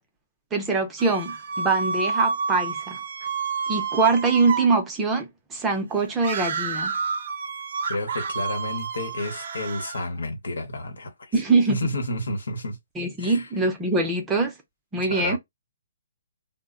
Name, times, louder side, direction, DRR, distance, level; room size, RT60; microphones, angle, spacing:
voice 1, 0.5-3.0 3.7-6.9 11.3-11.8 13.0-14.5 14.9-15.4, right 3 dB, 10° right, 0.5 m, -23 dB
sound 1, 1.0-4.7 6.2-10.1, right 5 dB, 55° right, 0.5 m, -29 dB
voice 2, 7.9-11.3 11.7-12.8 13.2-13.5 15.1-15.4, left 1 dB, 90° left, 0.9 m, -30 dB
2.1 x 2.0 x 3.6 m
hypercardioid pair, 160°, 0 cm